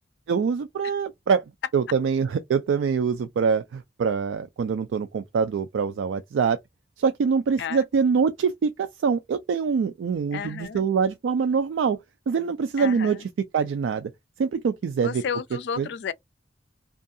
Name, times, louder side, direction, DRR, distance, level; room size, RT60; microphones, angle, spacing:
voice 1, 0.3-1.4 1.7-6.6 7.0-12.0 12.3-13.2 13.5-14.1 14.4-15.1 15.8-15.9, right 6 dB, 85° right, 0.3 m, -24 dB
voice 2, 10.3-10.9 12.8-13.2 15.0-16.1, left 7 dB, 65° left, 0.4 m, -32 dB
2.6 x 2.4 x 2.5 m
head